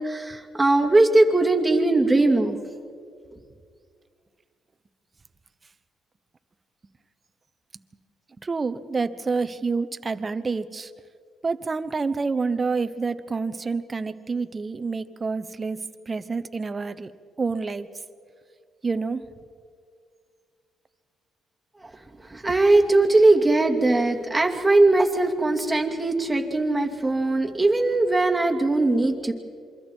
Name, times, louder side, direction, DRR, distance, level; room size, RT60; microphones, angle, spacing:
voice 1, 0.0-2.6 21.8-21.9 22.3-29.3, right 2 dB, 10° right, 2 dB, 2.5 m, -20 dB
voice 2, 8.4-10.9 11.4-15.8 16.1-17.1 17.4-17.9 18.8-19.2, right 4 dB, 30° right, 12 dB, 1.0 m, -28 dB
27.5 x 23.5 x 4.6 m, 2.1 s
cardioid pair, 90°, 0 cm